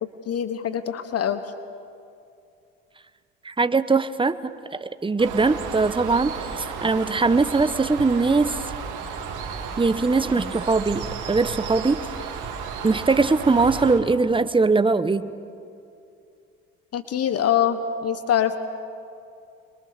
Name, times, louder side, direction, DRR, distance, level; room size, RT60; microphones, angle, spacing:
voice 1, 0.0-1.4 16.9-18.6, left 9 dB, 50° left, 11 dB, 1.3 m, -24 dB
voice 2, 3.4-8.6 9.8-12.0 12.8-15.3, right 3 dB, 15° right, 13 dB, 1.1 m, -21 dB
Bird, 5.2-14.0, right 6 dB, 65° right, 2.8 m, -33 dB
26.0 x 23.0 x 6.8 m, 2.5 s
hypercardioid pair, 65°, 32 cm